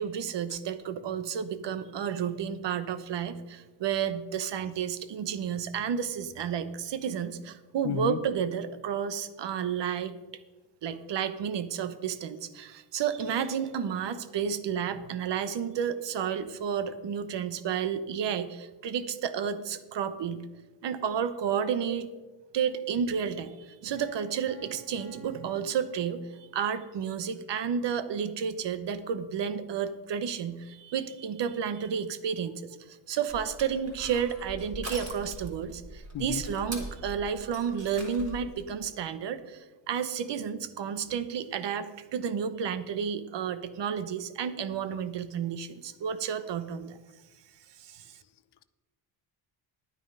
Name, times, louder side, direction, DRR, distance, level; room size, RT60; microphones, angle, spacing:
voice 1, 0.0-10.1 10.8-20.4 20.8-22.1 22.5-47.0 47.8-48.1, right 7 dB, 65° right, 12 dB, 1.0 m, -31 dB
voice 2, 7.8-8.2 36.1-36.5, left 10 dB, 60° left, 13 dB, 0.8 m, -32 dB
Piano, 24.0-26.7, right 3 dB, 85° right, 3.0 m, -51 dB
Crushing, 33.3-38.5, right 1 dB, 35° right, 3.4 m, -42 dB
11.0 x 9.3 x 5.5 m, 1.2 s
cardioid pair, 90°, 46 cm